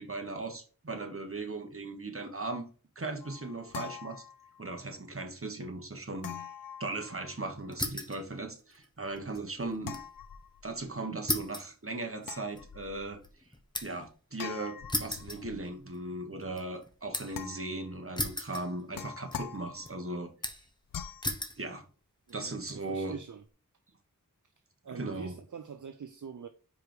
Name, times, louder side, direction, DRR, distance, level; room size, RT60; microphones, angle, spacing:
voice 1, 0.0-2.7 2.9-4.2 4.6-6.4 6.8-10.0 10.6-13.2 13.8-20.3 21.6-21.8 22.3-23.2 24.9-25.3, right 2 dB, 40° right, 1.3 m, -38 dB
sound 1, 3.2-4.8 6.2-7.6 9.8-10.9 12.2-13.3 14.4-15.8 17.3-18.0 18.5-20.1 20.9-21.4, left 8 dB, 80° left, 0.5 m, -44 dB
sound 2, 7.7-8.2 8.6-10.1 10.4-10.5 11.3-14.1 14.9-16.0 16.4-17.4 18.2-19.1 19.3-19.9 20.4-20.8 21.2-21.6 22.3-22.7, left 1 dB, 15° left, 1.0 m, -36 dB
voice 2, 22.3-23.4 24.8-26.5, right 6 dB, 60° right, 0.6 m, -44 dB
5.0 x 4.6 x 4.9 m
wide cardioid pair, 60°, 34 cm